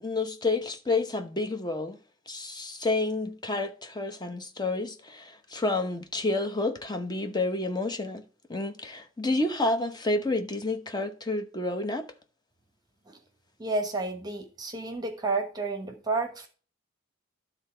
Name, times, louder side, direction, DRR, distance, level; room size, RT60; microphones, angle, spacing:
voice 1, 0.0-2.0 2.3-8.2 8.5-12.0, left 2 dB, 20° left, 0.9 m, -29 dB
voice 2, 13.6-16.5, right 3 dB, 20° right, 1.2 m, -31 dB
12.0 x 4.0 x 4.5 m
head